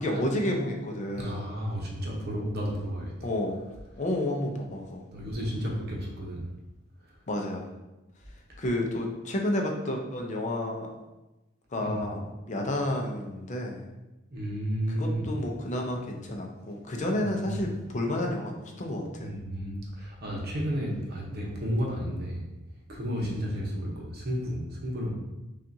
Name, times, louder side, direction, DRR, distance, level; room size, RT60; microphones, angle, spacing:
voice 1, 0.0-1.4 3.2-3.6 4.0-5.0 7.3-7.7 8.6-10.9 11.7-12.2 12.5-13.8 14.9-19.3 23.1-23.4, left 1 dB, 40° left, 1 dB, 0.5 m, -30 dB
voice 2, 1.1-3.3 5.1-6.4 11.8-12.0 14.3-15.2 17.2-17.7 19.2-22.4 22.9-25.1, equal, 55° right, -2 dB, 0.9 m, -32 dB
5.5 x 2.4 x 2.7 m, 1.0 s
head